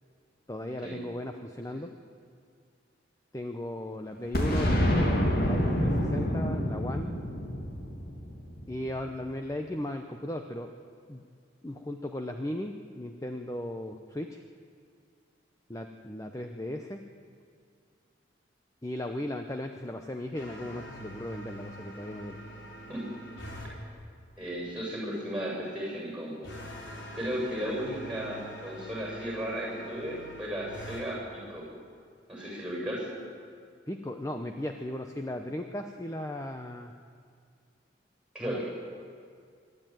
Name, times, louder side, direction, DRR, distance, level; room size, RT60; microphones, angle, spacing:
voice 1, 0.5-1.9 3.3-7.1 8.7-10.7 11.1-11.2 11.6-14.4 15.7-17.0 18.8-22.4 33.9-36.9 38.4-38.6, left 1 dB, 15° left, 5 dB, 0.8 m, -36 dB
Boom, 4.3-9.0, equal, 55° left, 2.8 m, -27 dB
sound 1, 20.3-23.7 26.4-31.0, equal, 80° left, 4.0 m, -45 dB
voice 2, 24.4-26.5 27.2-31.7 32.3-33.1 38.3-38.6, equal, 5° right, -3 dB, 7.6 m, -35 dB
25.0 x 12.5 x 9.3 m, 2.2 s
head